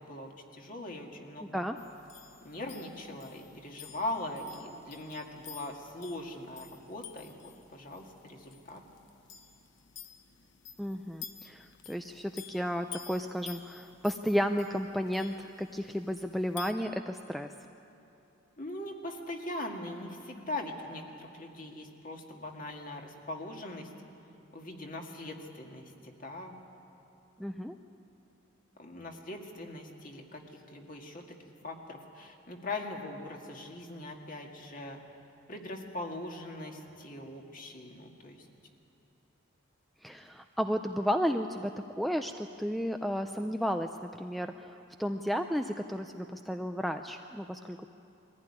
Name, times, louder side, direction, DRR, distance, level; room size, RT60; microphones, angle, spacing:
voice 1, 0.0-1.6 2.4-8.8 18.6-23.9 24.5-26.6 28.8-31.4 31.6-35.0 35.5-38.5, left 2 dB, 40° left, 2 dB, 2.0 m, -41 dB
voice 2, 1.4-1.8 10.8-17.5 27.4-27.8 40.0-41.7 42.0-47.9, equal, ahead, 6 dB, 0.4 m, -33 dB
sound 1, 1.8-16.7, left 9 dB, 60° left, 1.1 m, -51 dB
22.0 x 15.0 x 9.9 m, 2.8 s
head